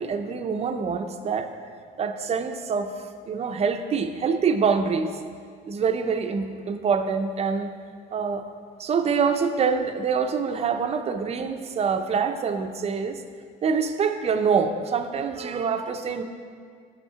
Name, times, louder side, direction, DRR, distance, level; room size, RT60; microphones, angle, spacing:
voice 1, 0.0-1.5 2.0-2.9 3.3-5.1 5.7-7.7 8.1-8.4 8.8-13.2 13.6-16.2, right 5 dB, 40° right, 7 dB, 0.6 m, -25 dB
8.1 x 5.4 x 5.7 m, 2.1 s
cardioid pair, 110°, 17 cm